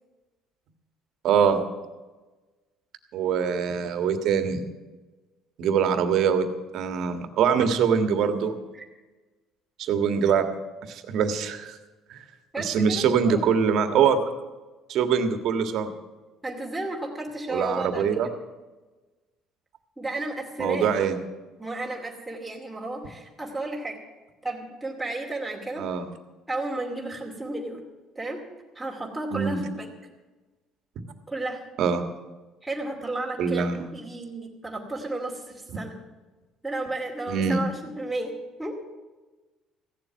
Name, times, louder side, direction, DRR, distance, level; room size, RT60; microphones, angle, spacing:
voice 1, 1.2-1.6 3.1-4.6 5.6-6.5 6.7-8.5 9.8-10.5 10.9-11.8 12.1-12.2 12.6-14.2 14.9-15.9 17.5-18.3 20.6-21.2 25.8-26.0 29.3-29.6 31.8-32.0 33.4-33.9 37.3-37.6, right 7 dB, 60° right, 7 dB, 1.7 m, -23 dB
voice 2, 12.5-13.4 16.4-18.1 20.0-20.9 21.6-24.0 24.4-25.8 26.5-27.8 28.1-28.4 28.7-29.9 31.3-31.7 32.6-36.0 36.6-38.3 38.6-38.8, right 2 dB, 5° right, -3 dB, 2.5 m, -33 dB
15.5 x 7.6 x 9.3 m, 1.2 s
cardioid pair, 125°, 0 cm